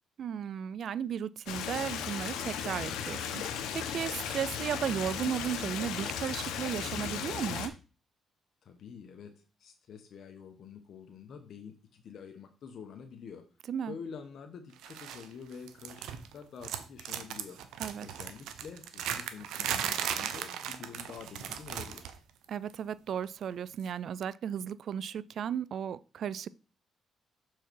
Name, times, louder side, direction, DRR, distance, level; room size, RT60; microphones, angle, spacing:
voice 1, 0.2-7.7 13.7-13.9 17.8-18.1 22.5-26.5, right 8 dB, 65° right, 0.3 m, -35 dB
Stream, 1.5-7.7, left 8 dB, 90° left, 0.9 m, -36 dB
voice 2, 8.6-9.3 9.6-13.4 13.9-17.6 18.0-22.1, left 6 dB, 65° left, 1.0 m, -47 dB
sound 1, 14.8-15.3 15.5-16.3 16.6-22.2 22.4-22.7 23.8-23.9, right 9 dB, 85° right, 0.7 m, -37 dB
6.6 x 4.7 x 4.6 m
cardioid pair, 90°, 0 cm